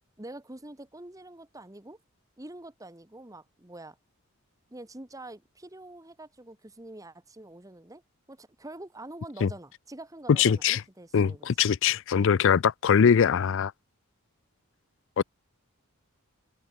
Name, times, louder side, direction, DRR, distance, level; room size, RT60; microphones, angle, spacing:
voice 1, 0.2-2.0 2.4-4.0 4.7-8.0 8.3-11.5, right 1 dB, 15° right, 1.3 m, -45 dB
voice 2, 10.3-10.8 11.1-13.7 15.2-15.3, left 7 dB, 60° left, 0.4 m, -22 dB
head